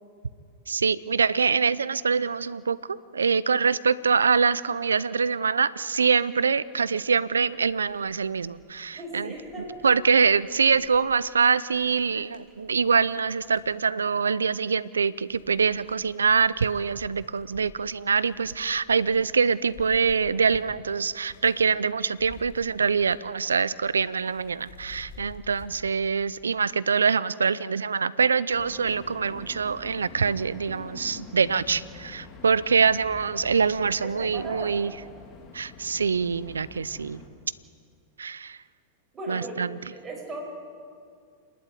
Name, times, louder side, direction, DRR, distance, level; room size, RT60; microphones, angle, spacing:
voice 1, 0.7-9.3 9.8-34.9 35.5-37.2 38.2-38.6 39.3-39.8, right 5 dB, 90° right, 19 dB, 0.6 m, -24 dB
sound 1, 7.6-13.7 14.3-14.9 15.2-21.7 21.9-23.3 23.6-25.7, left 3 dB, 60° left, 4.5 m, -51 dB
voice 2, 8.9-9.9 34.0-34.9 39.1-39.6 39.9-40.4, right 2 dB, 20° right, -2 dB, 7.8 m, -38 dB
sound 2, 28.5-37.3, left 5 dB, 35° left, 3.3 m, -46 dB
28.0 x 11.5 x 9.4 m, 2.2 s
hypercardioid pair, 100°, 0 cm